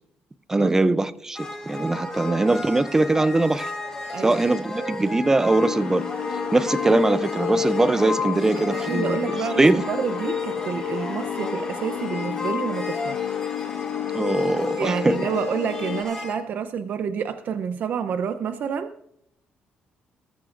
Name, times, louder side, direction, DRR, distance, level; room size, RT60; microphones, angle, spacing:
voice 1, 0.5-3.7 4.2-6.0 6.5-9.2 9.6-9.9 14.1-15.2, right 2 dB, 15° right, 0.6 m, -21 dB
sound 1, 1.3-16.3, left 2 dB, 15° left, 5.1 m, -34 dB
sound 2, 5.6-16.0, left 10 dB, 80° left, 1.5 m, -30 dB
voice 2, 8.6-13.2 14.8-18.9, right 7 dB, 55° right, 0.7 m, -29 dB
20.0 x 14.0 x 2.6 m
cardioid pair, 135°, 4 cm